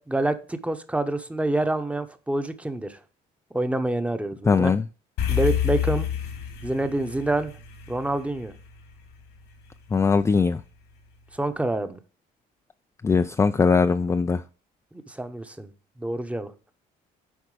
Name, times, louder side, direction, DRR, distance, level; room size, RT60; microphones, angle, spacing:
voice 1, 0.0-3.0 3.5-4.8 5.3-6.1 6.6-7.5 7.9-8.5 11.3-12.0 14.9-15.7 16.0-16.5, right 2 dB, 5° right, 0.8 m, -27 dB
voice 2, 4.5-4.8 9.9-10.6 13.0-14.4, left 5 dB, 15° left, 0.3 m, -20 dB
sound 1, 5.2-9.7, left 10 dB, 85° left, 2.5 m, -29 dB
9.6 x 4.4 x 4.9 m
cardioid pair, 110°, 17 cm